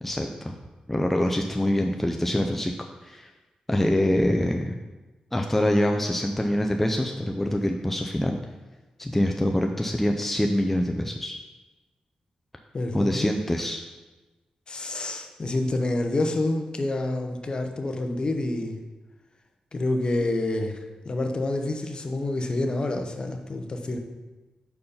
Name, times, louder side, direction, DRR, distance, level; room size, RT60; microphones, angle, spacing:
voice 1, 0.0-0.6 0.9-3.3 3.7-4.8 5.3-8.4 9.0-11.4 12.9-13.9, left 1 dB, 10° left, 3 dB, 0.4 m, -25 dB
voice 2, 12.7-13.3 14.7-18.8 19.7-24.0, left 2 dB, 40° left, 4 dB, 0.8 m, -28 dB
5.5 x 4.7 x 5.1 m, 1.2 s
cardioid pair, 90°, 2 cm